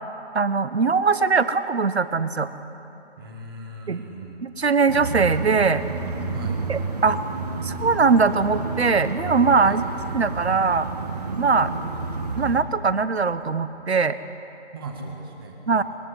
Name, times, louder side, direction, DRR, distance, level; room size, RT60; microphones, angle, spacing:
voice 1, 0.3-2.5 3.9-4.1 4.4-5.8 6.7-7.2 7.6-9.8 10.1-10.9 11.4-11.7 12.3-14.2 15.7-15.8, right 4 dB, 65° right, 13 dB, 1.3 m, -21 dB
voice 2, 3.2-4.4 6.3-6.6 9.6-9.8 14.7-15.8, right 2 dB, 20° right, 2 dB, 1.9 m, -38 dB
sound 1, 4.9-12.6, right 3 dB, 35° right, 1.8 m, -30 dB
23.5 x 21.5 x 9.8 m, 3.0 s
figure-of-eight pair, 160°, 35 cm